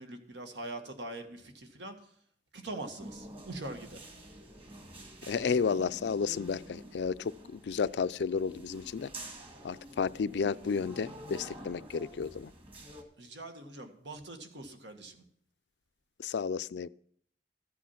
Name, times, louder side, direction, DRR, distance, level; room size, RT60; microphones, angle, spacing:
voice 1, 0.0-2.1 2.5-4.1 13.2-15.2, right 2 dB, 90° right, 5 dB, 1.8 m, -43 dB
sound 1, 3.0-13.0, right 1 dB, 30° right, 1.9 m, -48 dB
voice 2, 5.3-9.1 9.6-12.5 16.2-16.9, left 5 dB, 75° left, 17 dB, 0.4 m, -32 dB
13.0 x 8.5 x 5.8 m, 0.64 s
head